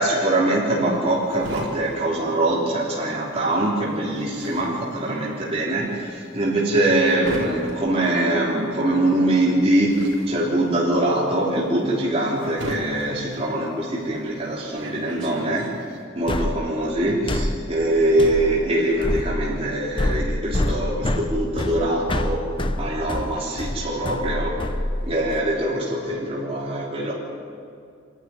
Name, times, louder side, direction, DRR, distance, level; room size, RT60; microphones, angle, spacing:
voice 1, 0.0-15.7 16.2-22.4 22.8-24.6 25.0-27.1, right 1 dB, 30° right, -6 dB, 3.5 m, -23 dB
sound 1, 0.6-3.1 3.4-16.0, right 1 dB, 75° right, 4.8 m, -37 dB
sound 2, 16.3-25.4, left 1 dB, 25° left, 0.8 m, -27 dB
26.0 x 12.0 x 9.8 m, 2.3 s
head